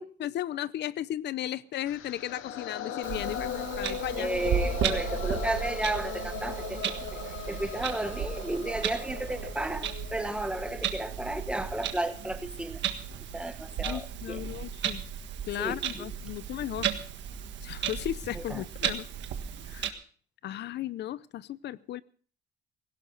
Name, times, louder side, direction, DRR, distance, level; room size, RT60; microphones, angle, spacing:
voice 1, 0.2-4.3 13.8-15.0 15.5-16.9 17.6-19.1 19.7-19.9 20.4-22.0, left 12 dB, 60° left, 19 dB, 0.6 m, -35 dB
sound 1, 1.6-9.9, right 12 dB, 85° right, 1.3 m, -44 dB
sound 2, 1.9-11.9, left 13 dB, 90° left, 0.9 m, -39 dB
Clock, 3.0-19.9, right 8 dB, 65° right, 1.6 m, -35 dB
voice 2, 4.2-12.8 13.3-14.4 15.6-16.1 18.3-18.9, right 1 dB, 5° right, 9 dB, 1.2 m, -33 dB
18.0 x 16.5 x 3.9 m, 0.44 s
cardioid pair, 155°, 20 cm